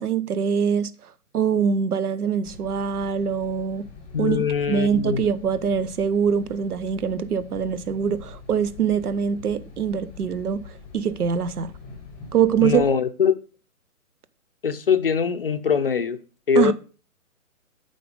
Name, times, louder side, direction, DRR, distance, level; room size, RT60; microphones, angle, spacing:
voice 1, 0.0-3.9 4.2-11.7 12.3-12.8 16.5-16.7, right 7 dB, 85° right, 0.9 m, -24 dB
sound 1, 2.4-12.9, left 4 dB, 5° left, 0.8 m, -44 dB
voice 2, 4.1-5.2 12.6-13.4 14.6-16.2 16.5-16.7, left 7 dB, 40° left, 0.5 m, -22 dB
8.4 x 3.9 x 5.2 m
hypercardioid pair, 160°, 44 cm